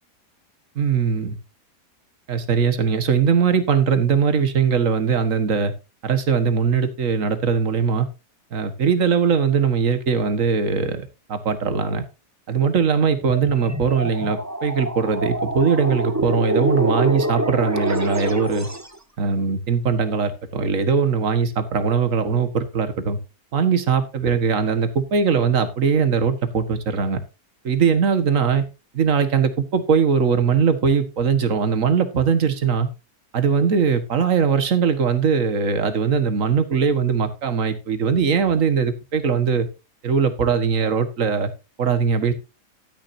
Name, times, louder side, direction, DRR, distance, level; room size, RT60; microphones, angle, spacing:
voice 1, 0.8-1.4 2.3-5.7 6.0-8.1 8.5-12.0 12.5-18.7 19.2-23.2 23.5-27.2 27.6-28.6 28.9-32.9 33.3-39.7 40.0-41.5 41.8-42.3, right 6 dB, 50° right, 9 dB, 1.9 m, -20 dB
sound 1, 13.2-19.0, right 1 dB, 10° right, 1.0 m, -26 dB
12.5 x 10.5 x 2.7 m, 0.28 s
omnidirectional pair, 1.8 m